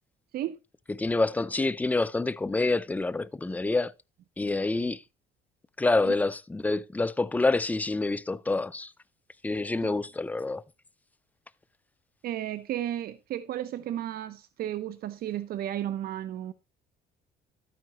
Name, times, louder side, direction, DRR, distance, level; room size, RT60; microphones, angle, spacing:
voice 1, 0.9-3.9 4.4-5.0 5.8-8.9 9.4-10.6, left 3 dB, 10° left, 0.5 m, -27 dB
voice 2, 12.2-16.5, right 12 dB, 65° right, 0.7 m, -33 dB
12.5 x 9.3 x 2.9 m
cardioid pair, 110°, 17 cm